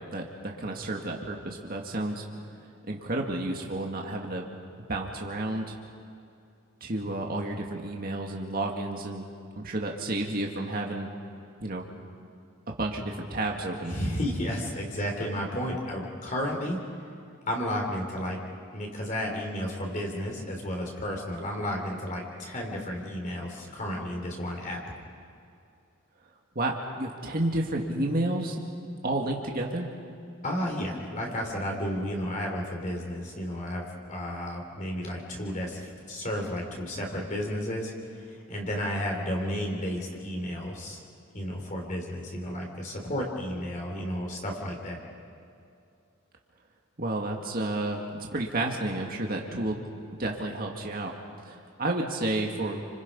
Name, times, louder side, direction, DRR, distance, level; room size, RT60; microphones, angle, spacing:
voice 1, 0.1-2.3 2.9-4.5 4.9-5.8 6.8-9.2 9.6-11.1 11.6-11.8 12.7-14.0 26.6-28.6 29.0-29.9 47.0-48.0 48.3-49.9 50.2-51.1 51.4-52.8, right 2 dB, 45° right, 0 dB, 2.1 m, -31 dB
voice 2, 13.9-16.8 17.5-18.4 18.7-24.8 30.4-41.0 41.3-45.0, equal, 40° left, 0 dB, 3.6 m, -32 dB
30.0 x 26.0 x 5.5 m, 2.5 s
head